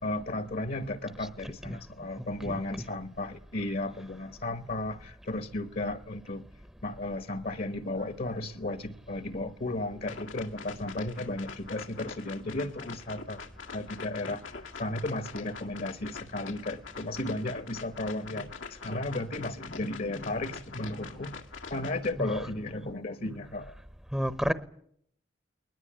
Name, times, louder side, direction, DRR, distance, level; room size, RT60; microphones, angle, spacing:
voice 1, 0.0-6.4 6.8-13.4 13.7-21.4 21.7-23.8, left 2 dB, 50° left, 1.2 m, -34 dB
voice 2, 1.4-1.8 2.4-2.6 22.2-22.4 24.1-24.5, equal, 5° right, 0.8 m, -31 dB
sound 1, 10.0-22.1, left 5 dB, 90° left, 2.0 m, -44 dB
21.0 x 20.5 x 8.9 m
head